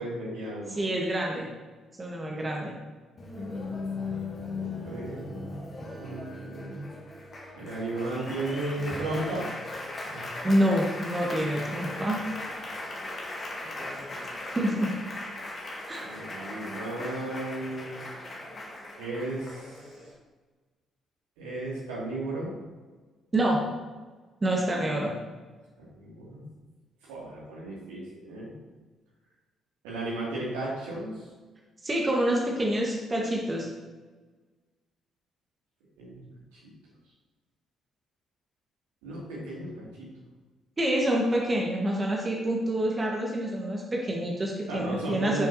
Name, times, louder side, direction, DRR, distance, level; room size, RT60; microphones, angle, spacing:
voice 1, 0.0-0.9 3.3-3.8 4.4-6.8 7.5-9.5 10.0-10.2 13.8-13.9 16.0-18.0 19.0-19.7 21.4-22.5 26.0-26.4 27.1-28.5 29.8-31.1 36.0-36.2 39.0-40.1 44.7-45.5, right 2 dB, 70° right, -6 dB, 2.6 m, -35 dB
voice 2, 0.7-1.5 2.0-2.7 10.4-12.2 14.5-14.9 15.9-16.1 23.3-23.6 24.4-25.1 31.8-33.7 40.8-45.5, right 1 dB, 25° right, -2 dB, 1.6 m, -27 dB
Applause, 3.2-20.1, left 2 dB, 40° left, 1.8 m, -38 dB
10.5 x 6.5 x 2.9 m, 1.3 s
figure-of-eight pair, 45°, 0 cm